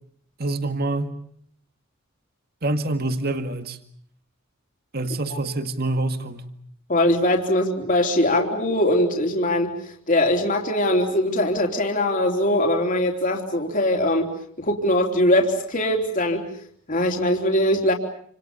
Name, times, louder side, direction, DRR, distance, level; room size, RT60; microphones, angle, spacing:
voice 1, 0.4-1.1 2.6-3.8 4.9-6.5, right 2 dB, 50° right, 8 dB, 2.0 m, -26 dB
voice 2, 6.9-9.7 10.1-14.3 14.6-16.5 16.9-17.9, left 1 dB, 40° left, 2 dB, 3.5 m, -21 dB
29.5 x 27.0 x 6.9 m, 0.62 s
head